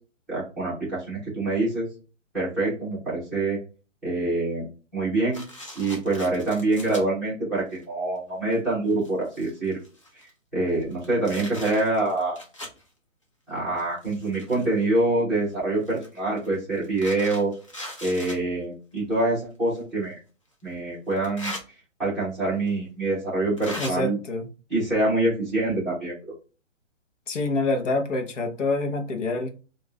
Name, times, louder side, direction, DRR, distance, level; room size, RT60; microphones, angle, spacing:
voice 1, 0.3-1.9 2.3-3.6 4.0-4.7 4.9-5.4 5.7-9.8 10.5-12.4 13.5-17.5 18.0-20.2 20.6-21.5 22.0-24.2 24.7-26.2, right 2 dB, ahead, 1.0 m, -25 dB
sound 1, 5.3-7.0 7.7-7.8 8.5-8.6 8.9-10.3 10.8-12.8 13.7-14.8 15.8-18.4 19.7-19.8 21.1-21.6 22.7-22.8 23.6-23.9, left 1 dB, 25° left, 0.5 m, -39 dB
voice 2, 23.8-24.5 27.3-29.5, left 2 dB, 70° left, 0.9 m, -26 dB
3.6 x 2.5 x 2.2 m
hypercardioid pair, 170°, 38 cm